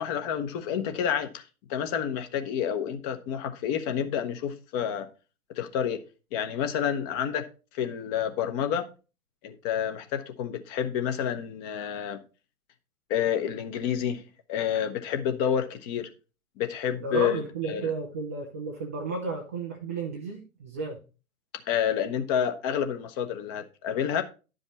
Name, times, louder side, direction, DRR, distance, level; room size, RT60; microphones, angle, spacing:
voice 1, 0.0-1.4 1.7-5.1 5.5-6.0 6.3-7.5 7.7-8.9 9.4-12.2 13.1-14.2 14.5-16.1 16.6-17.4 17.7-17.9 21.7-24.2, left 9 dB, 25° left, 1.0 m, -29 dB
voice 2, 17.0-21.0, right 4 dB, 10° right, 0.4 m, -33 dB
10.5 x 5.3 x 4.1 m
figure-of-eight pair, 115°, 44 cm